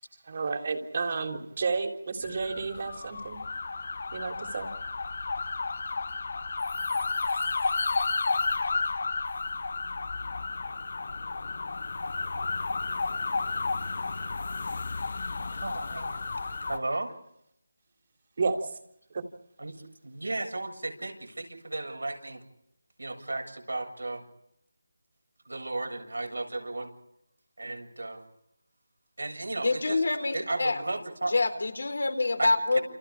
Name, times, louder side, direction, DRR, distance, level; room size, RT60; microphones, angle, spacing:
voice 1, 0.2-3.4 4.1-4.7 18.4-18.7 19.1-19.2, right 4 dB, 40° right, 4 dB, 3.7 m, -31 dB
sound 1, 2.2-16.8, left 4 dB, 55° left, 1.0 m, -32 dB
voice 2, 15.5-16.2 16.6-17.1 19.6-19.8 20.0-22.4 23.0-24.2 25.5-26.9 27.6-28.2 29.2-30.0 30.3-31.3 32.4-32.5, right 2 dB, 85° right, 4 dB, 7.6 m, -34 dB
voice 3, 29.6-30.8 31.3-32.8, left 3 dB, 70° left, 8 dB, 4.3 m, -26 dB
29.5 x 28.0 x 5.0 m, 0.76 s
figure-of-eight pair, 170°, 0 cm